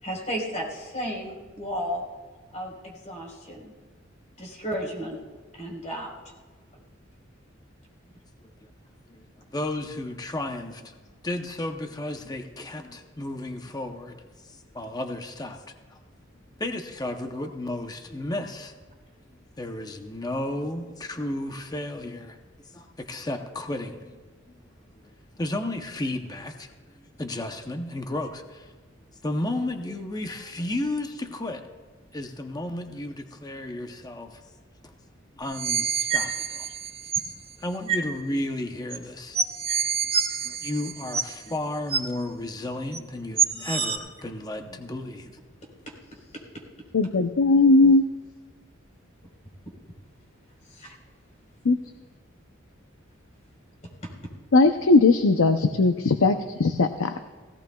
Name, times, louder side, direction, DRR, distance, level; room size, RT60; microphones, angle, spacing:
voice 1, 0.0-2.0 2.5-3.7 4.4-5.2 5.5-6.1 50.7-50.9, equal, 35° left, -1 dB, 4.1 m, -33 dB
voice 2, 9.5-11.0 11.2-15.8 16.6-18.7 19.6-24.5 25.0-28.7 29.2-31.7 32.1-34.4 34.8-34.9 35.3-36.7 37.6-39.4 40.4-45.4, left 1 dB, 20° left, 5 dB, 0.8 m, -33 dB
sound 1, 35.5-37.3 37.9-38.1 38.9-39.0 39.3-41.5 41.9-42.0 42.9-43.0 43.4-44.0, right 6 dB, 30° right, 1.1 m, -27 dB
voice 3, 46.9-48.0 51.6-51.8 54.5-57.2, left 3 dB, 85° left, 8 dB, 0.6 m, -19 dB
18.0 x 17.0 x 2.3 m, 1.4 s
head